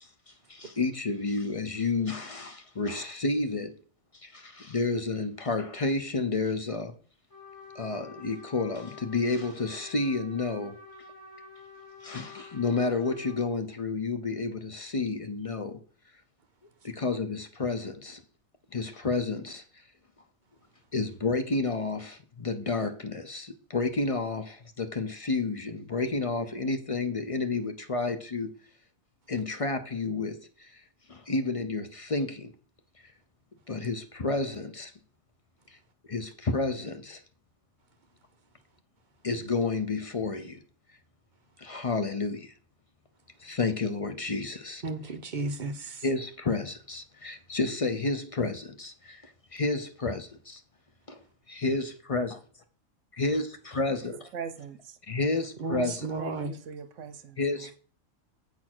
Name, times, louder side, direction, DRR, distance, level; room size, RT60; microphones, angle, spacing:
voice 1, 0.0-3.7 4.1-6.9 7.7-10.8 12.0-15.8 16.8-18.2 18.7-19.6 20.9-28.5 29.3-30.8 31.1-32.5 33.0-33.1 33.7-34.9 35.7-35.8 36.1-37.2 39.2-40.6 41.6-42.5 43.4-44.8 46.0-50.6 51.1-51.2 51.5-52.4 53.2-53.4 53.7-54.2 55.1-56.1 57.4-57.8, left 3 dB, 35° left, 0.6 m, -30 dB
Trumpet, 7.3-13.5, left 4 dB, 60° left, 3.1 m, -48 dB
voice 2, 44.8-46.0 55.6-56.5, right 3 dB, 45° right, 0.8 m, -33 dB
voice 3, 54.0-55.0 56.2-57.7, right 6 dB, 70° right, 1.2 m, -41 dB
7.8 x 4.3 x 6.0 m
omnidirectional pair, 1.4 m